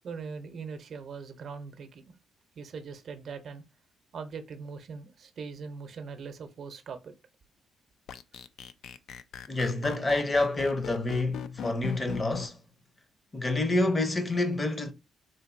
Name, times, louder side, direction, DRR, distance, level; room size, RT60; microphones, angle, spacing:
voice 1, 0.0-2.0 2.6-3.6 4.1-7.1, right 5 dB, 60° right, 0.6 m, -41 dB
sound 1, 8.1-12.5, left 7 dB, 70° left, 0.3 m, -39 dB
voice 2, 9.5-12.6 13.3-14.9, left 2 dB, 25° left, 0.7 m, -28 dB
3.9 x 2.6 x 2.5 m
cardioid pair, 90°, 0 cm